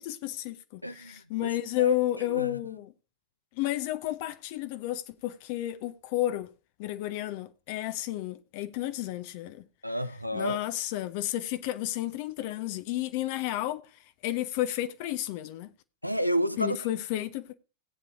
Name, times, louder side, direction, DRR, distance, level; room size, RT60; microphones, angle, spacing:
voice 1, 0.0-2.9 3.5-6.5 6.8-9.6 10.3-13.8 14.2-15.7 16.6-17.5, left 14 dB, 45° left, 0.7 m, -31 dB
voice 2, 0.8-2.6 9.8-10.6 16.0-16.8, equal, 90° right, 0.7 m, -31 dB
17.5 x 8.5 x 2.6 m
figure-of-eight pair, 90°, 0 cm